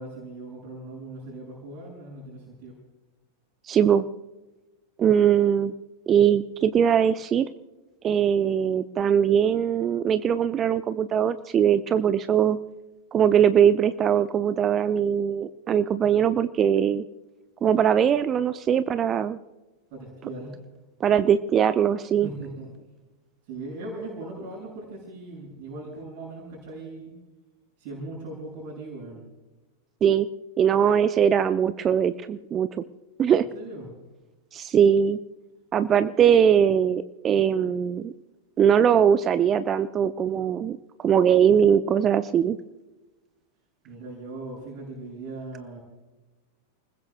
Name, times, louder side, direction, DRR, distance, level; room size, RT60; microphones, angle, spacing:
voice 1, 0.0-2.8 19.9-20.6 22.2-22.7 23.4-27.1 27.8-29.2 33.5-33.9 43.8-45.8, right 2 dB, 45° right, -6 dB, 7.2 m, -39 dB
voice 2, 3.7-4.0 5.0-5.7 6.1-7.5 8.0-12.6 13.1-17.0 17.6-19.4 21.0-22.3 30.0-30.3 30.6-32.7 33.2-33.5 34.5-35.2 35.7-38.1 38.6-42.6, right 8 dB, 25° right, 13 dB, 0.6 m, -21 dB
29.0 x 20.5 x 2.3 m, 1.1 s
figure-of-eight pair, 90°, 0 cm